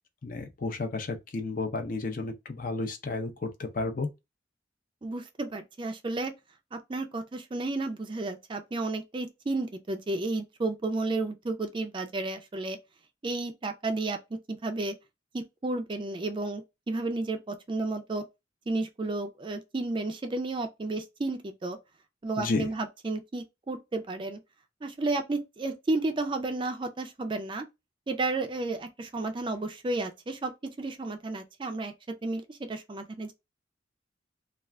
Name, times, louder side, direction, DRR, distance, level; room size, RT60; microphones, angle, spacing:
voice 1, 0.2-4.1 22.4-22.7, left 3 dB, 50° left, 0.5 m, -32 dB
voice 2, 5.0-6.3 6.7-12.8 13.2-14.9 15.3-18.2 18.7-21.8 22.2-24.4 24.8-27.7 28.1-31.9 32.2-33.3, right 2 dB, 25° right, 0.4 m, -32 dB
2.4 x 2.3 x 3.2 m
head